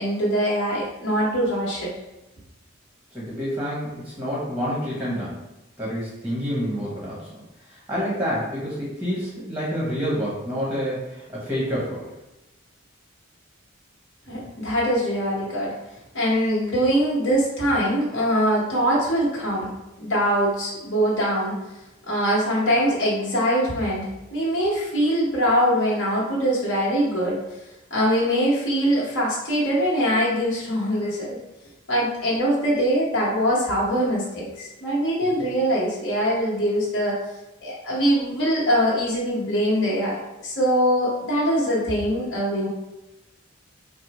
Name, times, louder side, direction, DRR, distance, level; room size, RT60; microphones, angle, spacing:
voice 1, 0.0-1.9 14.3-15.7 16.1-19.7 20.0-21.6 22.1-27.4 27.9-31.4 31.9-37.2 37.6-42.7, equal, 60° left, -6 dB, 1.1 m, -23 dB
voice 2, 3.1-5.4 5.8-12.0, equal, 10° right, -6 dB, 0.8 m, -28 dB
4.1 x 2.0 x 2.9 m, 0.96 s
head